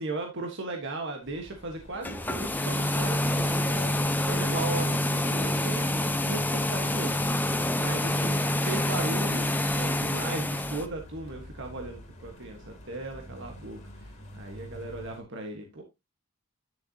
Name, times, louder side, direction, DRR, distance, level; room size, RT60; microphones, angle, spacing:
voice 1, 0.0-15.8, right 2 dB, 55° right, 3 dB, 1.3 m, -37 dB
sound 1, 1.2-15.2, equal, 35° left, 2.8 m, -48 dB
sound 2, 1.9-10.9, left 1 dB, 10° left, 0.6 m, -27 dB
10.5 x 6.6 x 2.8 m, 0.22 s
head